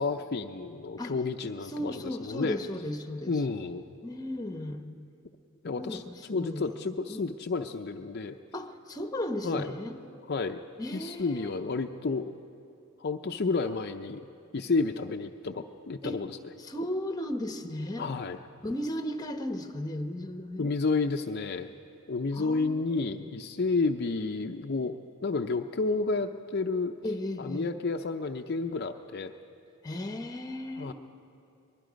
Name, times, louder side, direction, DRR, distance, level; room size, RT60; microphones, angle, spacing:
voice 1, 0.0-2.6 3.3-3.8 5.6-6.0 6.3-8.4 9.4-9.7 10.3-10.6 10.9-12.3 13.0-14.2 14.5-16.4 18.0-18.4 20.6-21.7 22.1-26.9 27.4-29.3 30.8-30.9, left 3 dB, 50° left, 4 dB, 0.6 m, -31 dB
voice 2, 1.7-3.4 4.0-4.8 5.8-6.6 7.1-7.2 8.5-9.9 10.8-11.5 16.0-16.2 16.6-18.1 18.6-20.7 22.3-23.1 27.0-27.7 29.8-30.9, left 1 dB, 20° left, 7 dB, 1.0 m, -35 dB
24.0 x 20.5 x 5.2 m, 2.8 s
head